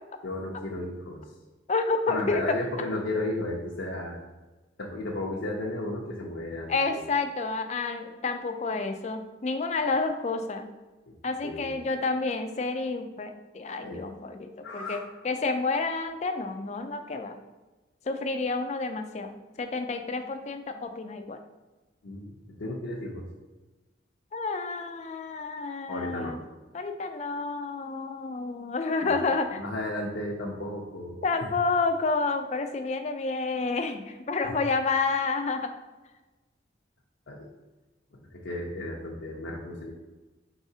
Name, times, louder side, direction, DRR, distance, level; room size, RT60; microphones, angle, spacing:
voice 1, 0.2-1.3 2.1-4.2 4.8-7.0 11.1-11.2 11.4-11.8 13.8-14.0 14.6-15.1 22.0-23.3 25.9-26.4 29.0-29.2 29.5-31.5 34.4-34.6 37.3-37.5 38.1-39.9, left 1 dB, 80° left, -3 dB, 0.7 m, -34 dB
voice 2, 1.7-2.6 6.7-10.7 11.2-15.0 15.2-17.4 18.1-19.3 19.6-21.4 24.3-26.4 26.7-29.6 31.2-35.7, left 3 dB, 35° left, 7 dB, 0.4 m, -29 dB
4.8 x 4.0 x 2.7 m, 1.2 s
head